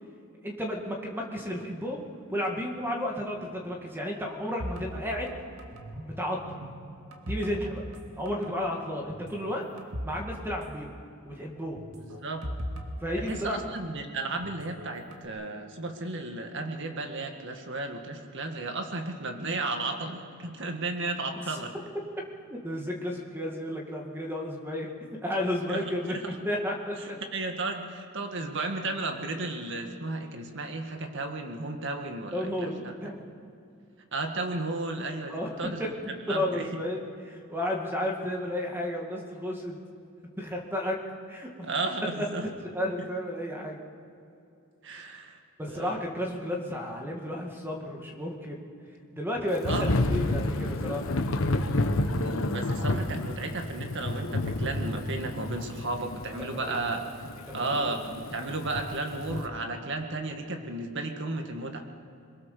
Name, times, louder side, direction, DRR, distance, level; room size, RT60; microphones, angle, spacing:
voice 1, 0.4-2.0 2.3-5.3 6.0-6.6 7.3-7.8 8.2-9.7 10.0-11.0 11.2-11.9 13.0-13.6 22.5-27.2 32.3-33.2 35.3-35.9 36.3-39.8 40.4-41.0 41.3-41.7 42.2-42.3 42.6-43.8 44.9-45.1 45.6-48.6 49.1-51.3 56.5-57.0 57.5-57.9, left 1 dB, 10° right, 0 dB, 2.1 m, -33 dB
sound 1, 4.6-6.1 6.4-8.0 8.3-8.5 9.1-10.2 10.5-10.6 11.8-13.8 14.4-15.3, equal, 80° right, 2.1 m, -39 dB
voice 2, 12.0-12.5 13.2-21.7 25.7-26.3 27.0-32.9 34.1-35.8 36.3-36.8 41.7-42.5 43.0-43.1 44.8-46.0 49.7-50.3 52.2-57.0 57.5-61.8, right 2 dB, 60° right, 4 dB, 1.9 m, -34 dB
Thunder / Rain, 49.7-59.5, left 2 dB, 70° left, 1.2 m, -30 dB
22.5 x 21.5 x 6.8 m, 2.6 s
head